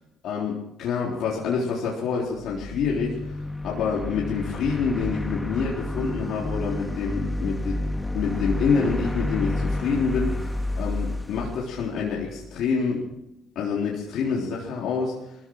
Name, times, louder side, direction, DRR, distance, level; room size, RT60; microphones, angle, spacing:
voice 1, 0.2-7.8 8.1-13.0 13.6-15.4, left 5 dB, 75° left, -4 dB, 3.7 m, -27 dB
sound 1, 2.3-12.5, left 1 dB, 10° left, 1.5 m, -30 dB
20.0 x 15.0 x 4.8 m, 0.90 s
cardioid pair, 95°, 0 cm